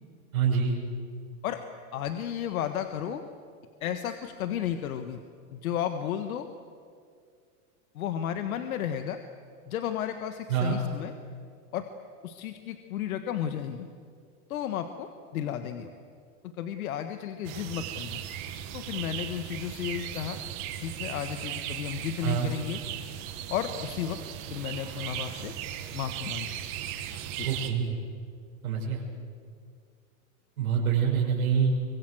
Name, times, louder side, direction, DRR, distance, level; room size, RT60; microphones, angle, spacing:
voice 1, 0.3-0.8 10.5-10.8 22.2-22.5 27.4-28.0 28.6-29.0 30.6-31.7, right 7 dB, 75° right, -4 dB, 6.2 m, -26 dB
voice 2, 1.9-3.2 3.8-5.2 5.5-6.5 7.9-9.2 9.7-11.1 11.7-11.9 12.2-13.9 14.5-15.9 16.6-18.2 18.7-20.4 20.8-22.8 23.5-24.2 24.5-25.5 25.9-26.5 27.4-27.5, left 9 dB, 80° left, 8 dB, 1.6 m, -33 dB
sound 1, 17.4-27.7, right 10 dB, 35° right, 1.7 m, -37 dB
24.5 x 24.0 x 7.9 m, 2.2 s
supercardioid pair, 175°, 42 cm